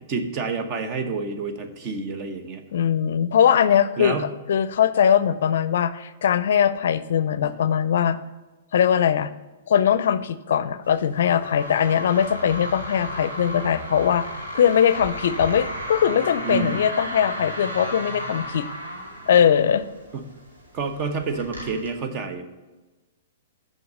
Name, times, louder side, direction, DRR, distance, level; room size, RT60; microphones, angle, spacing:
voice 1, 0.1-2.6 4.0-4.3 7.4-7.5 16.4-16.8 20.1-20.3 20.7-22.4, right 4 dB, 35° right, 7 dB, 1.0 m, -28 dB
voice 2, 2.7-8.2 8.7-9.3 9.7-18.7 19.3-19.9, left 8 dB, 65° left, 14 dB, 0.4 m, -21 dB
sound 1, 10.8-21.9, equal, 90° right, 2.2 m, -34 dB
6.9 x 5.2 x 6.4 m, 1.2 s
hypercardioid pair, 120°, 0 cm